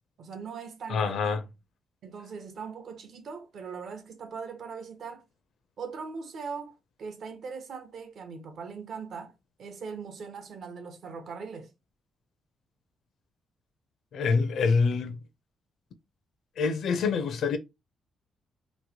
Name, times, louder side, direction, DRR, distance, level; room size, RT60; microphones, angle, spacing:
voice 1, 0.2-1.4 2.0-5.2 5.8-9.3 9.6-11.7, right 5 dB, 60° right, 0.7 m, -40 dB
voice 2, 0.9-1.4 14.1-15.2 16.6-17.6, left 5 dB, 65° left, 0.5 m, -26 dB
3.0 x 2.1 x 2.8 m
cardioid pair, 125°, 0 cm